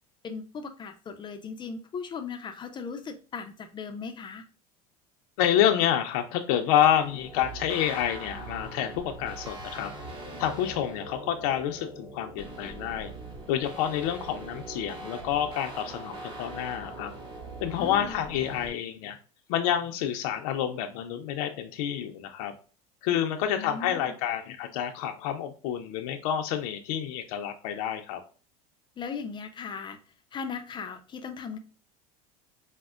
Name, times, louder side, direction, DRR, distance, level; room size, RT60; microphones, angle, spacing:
voice 1, 0.2-4.4 17.8-18.2 23.5-24.1 29.0-30.0 30.3-31.6, left 5 dB, 25° left, 7 dB, 0.4 m, -38 dB
voice 2, 5.4-9.9 10.4-13.1 13.5-17.1 17.6-19.2 19.5-22.5 23.0-28.2, left 10 dB, 75° left, 5 dB, 0.5 m, -28 dB
sound 1, 6.7-18.7, right 2 dB, 25° right, 1.0 m, -41 dB
5.0 x 2.1 x 2.3 m, 0.37 s
supercardioid pair, 120°, 19 cm